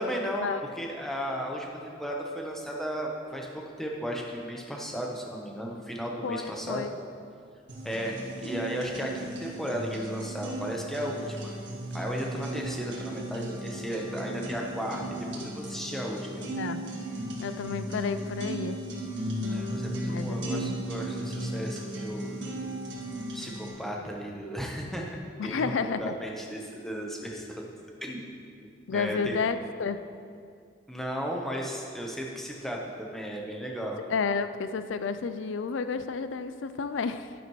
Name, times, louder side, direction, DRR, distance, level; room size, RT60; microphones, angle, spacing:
voice 1, 0.0-0.5 0.8-1.7 2.0-6.8 7.8-11.5 11.9-16.4 19.4-22.3 23.3-25.0 25.4-25.7 26.0-27.6 28.0-28.3 28.9-29.4 30.9-34.0, equal, ahead, -1 dB, 0.9 m, -35 dB
voice 2, 6.2-6.9 16.5-16.8 17.4-18.8 20.0-20.9 25.4-26.1 28.9-30.0 34.1-37.3, left 5 dB, 90° left, 11 dB, 0.4 m, -31 dB
sound 1, 7.7-23.7, right 1 dB, 70° right, 1.8 m, -36 dB
11.0 x 10.0 x 3.1 m, 2.3 s
head